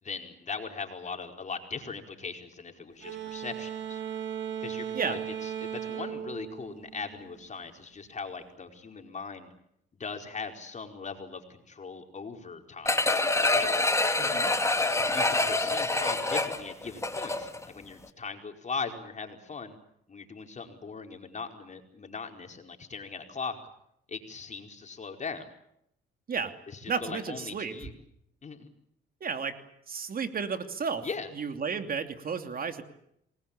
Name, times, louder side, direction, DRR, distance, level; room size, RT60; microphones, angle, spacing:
voice 1, 0.0-4.0 4.6-9.5 9.9-13.1 13.5-13.9 14.7-19.7 20.1-23.6 24.1-25.5 26.7-27.9 28.4-28.7 31.0-31.3, left 5 dB, 35° left, 4 dB, 4.8 m, -39 dB
sound 1, 3.0-7.5, right 9 dB, 70° right, 7.2 m, -37 dB
sound 2, 12.9-17.6 18.0-18.1, left 2 dB, 15° left, 2.5 m, -26 dB
voice 2, 14.2-14.5 26.3-26.5 26.9-27.7 29.2-29.6 29.9-31.0 31.4-32.8, right 5 dB, 45° right, 7 dB, 2.8 m, -32 dB
27.5 x 20.5 x 8.7 m, 0.76 s
cardioid pair, 90°, 20 cm